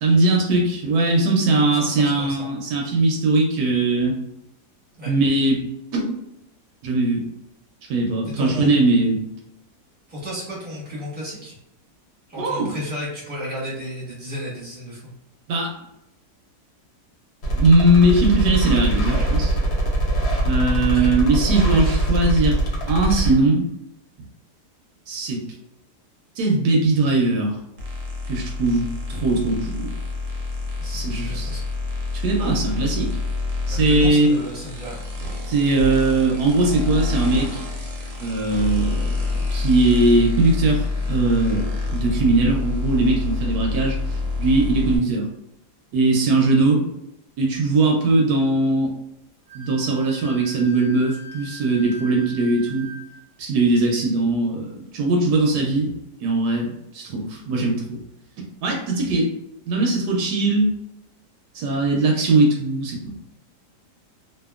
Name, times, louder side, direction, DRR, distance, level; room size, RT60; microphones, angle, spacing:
voice 1, 0.0-4.2 5.1-5.6 5.9-6.2 6.8-7.2 7.9-9.2 12.4-12.7 15.5-15.7 17.6-19.5 20.4-22.6 22.9-23.6 25.1-25.4 26.4-27.6 28.3-29.9 30.9-31.5 32.2-33.2 33.7-34.4 35.4-37.6 38.2-45.3 45.9-46.8 47.4-48.9 49.5-52.9 53.4-55.9 56.2-58.0 58.4-59.3 59.7-60.7 61.5-63.1, right 2 dB, 75° right, 0 dB, 1.1 m, -20 dB
voice 2, 1.7-2.5 2.9-3.0 5.0-5.1 8.2-8.7 10.1-11.6 12.3-15.1 20.8-21.1 30.8-31.6 33.7-35.0, equal, 5° right, -7 dB, 1.0 m, -33 dB
sound 1, 17.4-23.3, right 1 dB, 65° left, 0.6 m, -22 dB
sound 2, 27.8-45.0, left 3 dB, 60° right, 0.9 m, -27 dB
Wind instrument woodwind instrument, 49.5-53.2, left 1 dB, 25° left, 1.1 m, -41 dB
2.7 x 2.5 x 2.3 m, 0.87 s
omnidirectional pair, 1.8 m